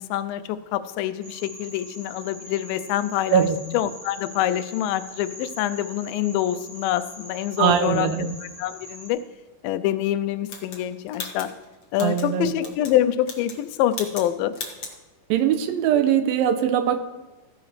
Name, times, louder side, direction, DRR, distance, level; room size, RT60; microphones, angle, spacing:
voice 1, 0.0-3.5 3.7-8.1 8.4-9.2 9.6-11.5 11.9-14.5, left 12 dB, 85° left, 12 dB, 2.3 m, -25 dB
sound 1, 1.2-9.1, equal, 65° right, 5.0 m, -42 dB
voice 2, 7.6-8.4 12.0-12.5 15.3-17.0, right 9 dB, 85° right, 9 dB, 2.5 m, -21 dB
sound 2, 10.5-12.3 12.6-13.0 13.2-13.6 13.9-14.3 14.5-15.0, left 4 dB, 70° left, 0.9 m, -36 dB
15.0 x 10.5 x 3.2 m, 1.1 s
omnidirectional pair, 4.1 m